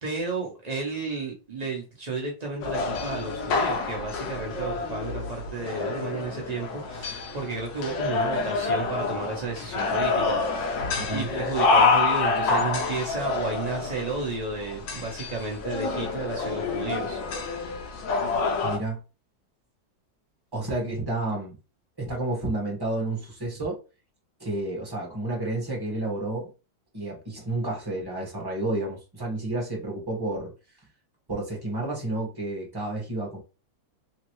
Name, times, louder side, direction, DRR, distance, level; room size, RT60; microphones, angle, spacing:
voice 1, 0.0-17.2, right 3 dB, 60° right, 0.4 m, -33 dB
sound 1, 2.6-18.8, left 4 dB, 75° left, 1.4 m, -27 dB
voice 2, 11.0-11.3 18.6-19.0 20.5-21.5 22.0-23.8 24.4-26.5 26.9-30.5 31.3-33.4, right 2 dB, 15° right, 1.2 m, -30 dB
3.5 x 3.1 x 3.0 m
omnidirectional pair, 2.1 m